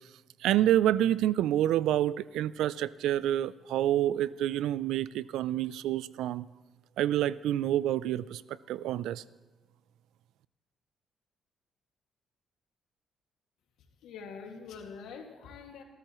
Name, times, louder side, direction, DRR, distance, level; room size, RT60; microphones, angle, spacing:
voice 1, 0.4-6.4 7.0-9.2, right 12 dB, 85° right, 19 dB, 0.4 m, -28 dB
voice 2, 14.0-15.8, left 5 dB, 85° left, 3 dB, 2.1 m, -44 dB
28.0 x 13.5 x 3.1 m, 1.2 s
cardioid pair, 90°, 0 cm